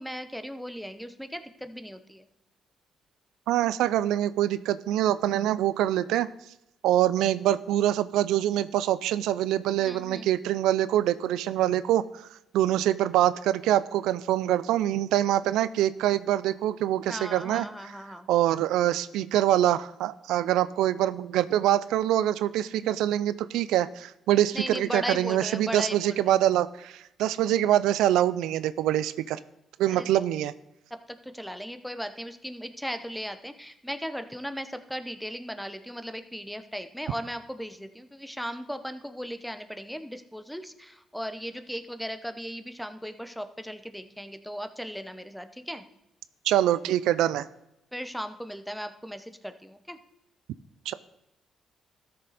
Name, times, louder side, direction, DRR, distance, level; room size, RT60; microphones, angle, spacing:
voice 1, 0.0-2.3 9.7-10.3 17.1-18.3 24.5-26.2 29.9-30.1 30.9-45.8 47.9-50.0, equal, ahead, 10 dB, 0.8 m, -37 dB
voice 2, 3.5-6.3 6.8-12.3 12.5-17.7 18.3-29.4 29.8-30.5 46.4-47.5 50.9-51.0, right 12 dB, 90° right, 15 dB, 0.4 m, -25 dB
13.5 x 6.6 x 4.1 m, 0.84 s
cardioid pair, 90°, 0 cm